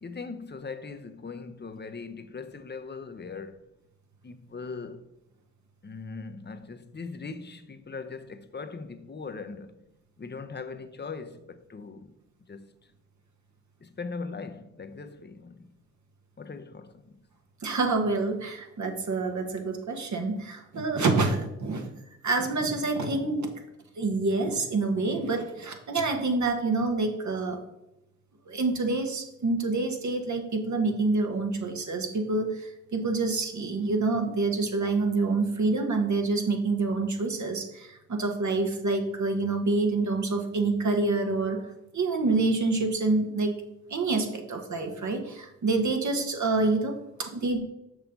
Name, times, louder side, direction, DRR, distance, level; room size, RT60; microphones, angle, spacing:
voice 1, 0.0-3.6 4.2-5.0 5.8-9.8 10.2-12.1 12.5-12.7 13.8-15.7 16.4-17.2, left 4 dB, 30° left, 0.9 m, -40 dB
voice 2, 17.6-21.9 22.2-23.5 24.0-27.6 28.5-41.6 41.9-43.5 43.9-47.6, right 3 dB, 50° right, 1.5 m, -27 dB
6.4 x 5.6 x 5.2 m
supercardioid pair, 50°, 37 cm